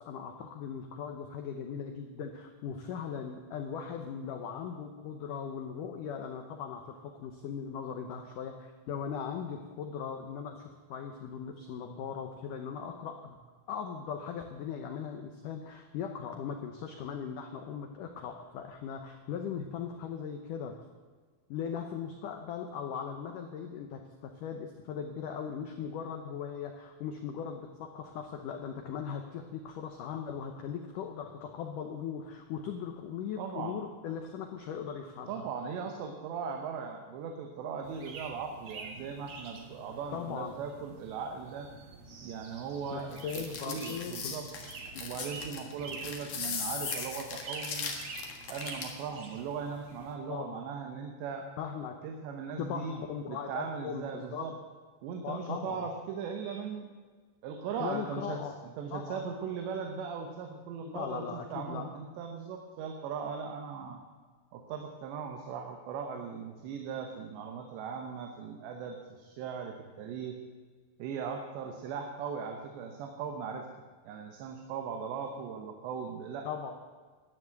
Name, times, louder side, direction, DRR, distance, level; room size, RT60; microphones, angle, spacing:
voice 1, 0.0-13.4 13.7-20.7 21.5-35.4 40.1-40.5 42.9-44.3 44.9-45.1 50.3-50.6 51.6-52.0 52.6-54.5 55.2-55.8 57.8-58.5 58.9-59.2 60.9-61.9 76.5-76.7, left 7 dB, 85° left, 5 dB, 1.8 m, -39 dB
voice 2, 33.4-33.8 35.3-41.7 42.2-43.2 43.7-44.5 45.0-47.9 48.5-51.5 52.0-54.5 55.0-56.9 57.4-61.2 61.5-64.0 64.5-70.4 71.0-73.7 74.0-76.7, right 6 dB, 85° right, 4 dB, 3.3 m, -39 dB
sound 1, 37.8-50.2, right 4 dB, 65° right, 1.4 m, -47 dB
sound 2, 43.1-49.0, left 5 dB, 50° left, 2.0 m, -38 dB
12.0 x 9.9 x 7.9 m, 1.5 s
omnidirectional pair, 5.0 m